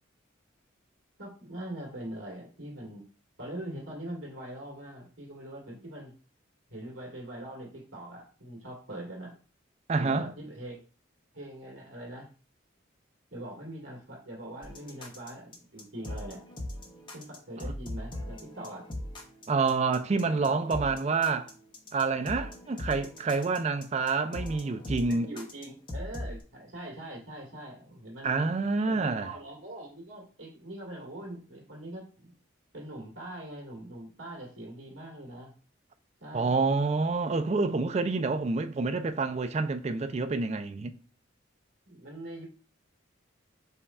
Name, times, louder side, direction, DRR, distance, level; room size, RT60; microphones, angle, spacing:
voice 1, 1.2-3.0 3.4-6.1 6.7-9.3 10.0-10.8 11.3-12.3 13.3-16.4 17.1-18.9 25.1-28.5 28.9-32.3 32.7-35.5 36.2-36.6 38.0-38.4 41.9-42.5, right 1 dB, 75° right, 1.9 m, -42 dB
voice 2, 9.9-10.3 19.5-21.5 21.9-25.3 28.2-29.3 36.3-40.9, right 4 dB, 30° right, 0.3 m, -28 dB
sound 1, 14.6-26.4, left 1 dB, 25° left, 0.8 m, -40 dB
5.4 x 2.3 x 4.2 m
head